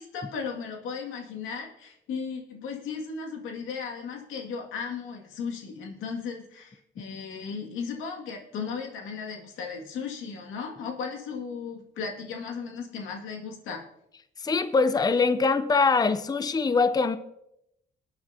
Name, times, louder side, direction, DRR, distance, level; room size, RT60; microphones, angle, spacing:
voice 1, 0.0-13.8, left 5 dB, 90° left, 1 dB, 2.2 m, -36 dB
voice 2, 14.4-17.2, left 4 dB, 20° left, 12 dB, 0.6 m, -23 dB
21.0 x 8.7 x 2.8 m, 0.81 s
cardioid pair, 90°, 20 cm